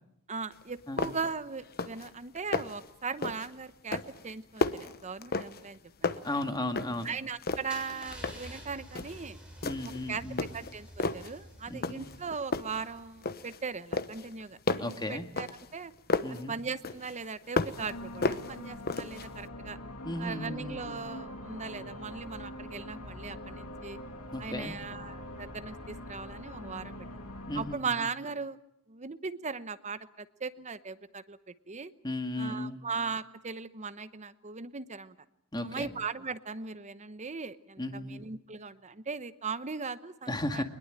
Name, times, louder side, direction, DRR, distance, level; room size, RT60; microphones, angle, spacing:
voice 1, 0.3-6.4 7.0-9.4 9.8-15.9 16.3-19.8 20.2-24.0 24.4-27.0 27.5-28.6 28.9-31.9 32.4-35.1 35.6-40.6, right 5 dB, 30° right, 13 dB, 1.0 m, -39 dB
sound 1, 0.5-0.6 1.0-1.4 1.7-2.1 2.4-2.9 3.2-3.5 3.9-5.7 6.0-7.1 7.4-8.5 8.9-9.2 9.6-10.0 10.4-11.3 11.8-12.2 12.5-13.6 13.9-16.4 16.8-17.9 18.2-19.3, left 3 dB, 45° left, 1.1 m, -33 dB
voice 2, 6.2-7.1 9.6-10.5 11.7-12.1 14.8-15.3 16.2-16.5 20.1-21.0 24.3-24.8 27.5-27.8 32.0-32.8 35.5-35.9 37.8-38.2 40.3-40.6, left 1 dB, 20° left, 6 dB, 1.9 m, -35 dB
Car / Engine starting / Idling, 7.7-13.5, right 1 dB, 5° right, 6.8 m, -50 dB
sound 2, 17.7-27.8, left 1 dB, 90° left, 3.1 m, -43 dB
22.0 x 21.0 x 8.9 m, 0.75 s
head